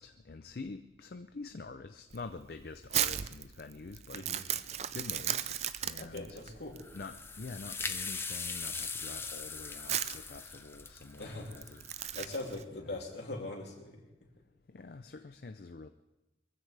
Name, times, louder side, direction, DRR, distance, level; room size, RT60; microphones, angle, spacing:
voice 1, 0.0-4.6 4.9-6.4 6.9-11.8 12.9-13.0 14.7-15.9, left 3 dB, 55° left, 8 dB, 0.5 m, -46 dB
Crumpling crinkling, 2.1-12.6, right 10 dB, 35° right, 0.4 m, -37 dB
voice 2, 4.1-4.4 6.0-6.8 11.2-11.5 12.1-14.0, left 2 dB, 75° left, -1 dB, 3.0 m, -41 dB
sound 1, 6.8-12.3, left 4 dB, 15° left, 0.5 m, -40 dB
23.0 x 15.0 x 3.4 m, 1.0 s
head